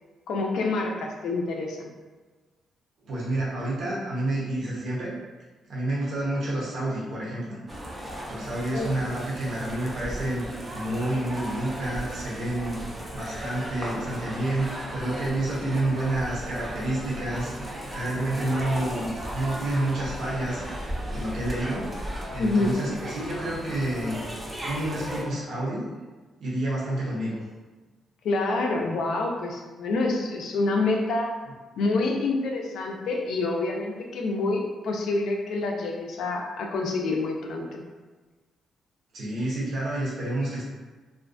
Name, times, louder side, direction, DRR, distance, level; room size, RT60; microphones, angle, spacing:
voice 1, 0.3-1.9 8.7-9.0 22.4-22.8 28.2-31.3 31.8-37.8, left 3 dB, 70° left, 1 dB, 0.4 m, -27 dB
voice 2, 3.1-5.1 5.7-7.6 8.3-10.4 10.7-20.6 21.1-22.1 22.3-24.2 24.6-25.8 26.4-27.4 39.1-40.6, right 1 dB, 55° right, -7 dB, 0.7 m, -29 dB
sound 1, 7.7-25.2, equal, 15° right, 0.4 m, -36 dB
2.4 x 2.2 x 2.5 m, 1.3 s
cardioid pair, 160°, 0 cm